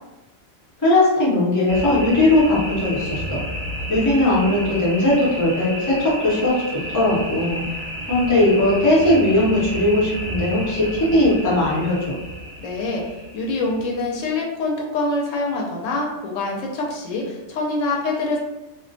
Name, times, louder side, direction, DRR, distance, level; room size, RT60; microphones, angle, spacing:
voice 1, 0.8-3.4 3.9-7.6 8.1-12.2, left 1 dB, 20° left, -8 dB, 0.7 m, -19 dB
sound 1, 1.7-14.3, equal, 60° right, 0.9 m, -32 dB
voice 2, 12.6-18.4, left 2 dB, 85° left, -1 dB, 0.9 m, -25 dB
2.3 x 2.2 x 2.6 m, 1.0 s
omnidirectional pair, 1.3 m